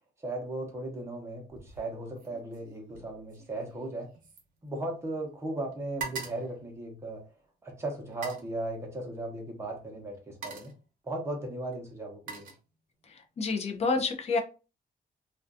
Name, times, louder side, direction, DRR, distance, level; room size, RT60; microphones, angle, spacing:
voice 1, 0.2-4.1 4.6-7.2 7.6-10.7 11.0-12.5, right 2 dB, 15° right, 0.7 m, -37 dB
sound 1, 1.5-1.9 2.2-5.3 5.6-7.5 8.1-8.5 9.6-9.8 10.1-10.9 11.7-13.1 13.5-13.9, right 5 dB, 55° right, 0.7 m, -44 dB
voice 2, 13.1-14.4, left 4 dB, 40° left, 0.5 m, -29 dB
2.5 x 2.2 x 2.5 m
wide cardioid pair, 165°, 17 cm